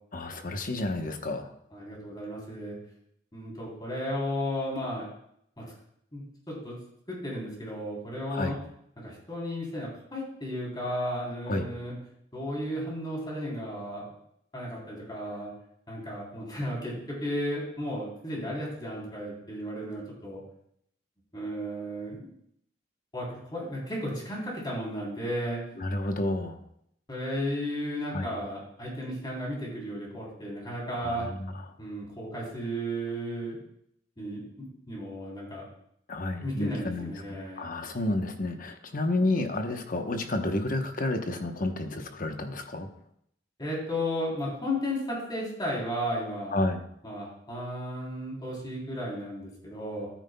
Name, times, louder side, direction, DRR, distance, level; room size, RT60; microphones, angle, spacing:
voice 1, 0.1-1.5 8.3-8.6 11.5-11.7 25.8-26.6 28.1-28.3 31.0-31.5 36.1-42.9 46.5-46.8, left 2 dB, 50° left, 6 dB, 0.9 m, -30 dB
voice 2, 1.7-2.8 3.3-5.0 5.6-5.7 6.1-6.8 7.1-8.6 9.0-11.9 12.3-14.0 14.5-15.5 15.9-20.4 21.3-22.3 23.1-25.6 27.1-31.3 31.8-33.6 34.2-35.7 36.4-37.7 43.6-46.6 47.0-50.1, equal, 25° left, -3 dB, 3.3 m, -34 dB
13.0 x 9.2 x 2.2 m, 0.73 s
head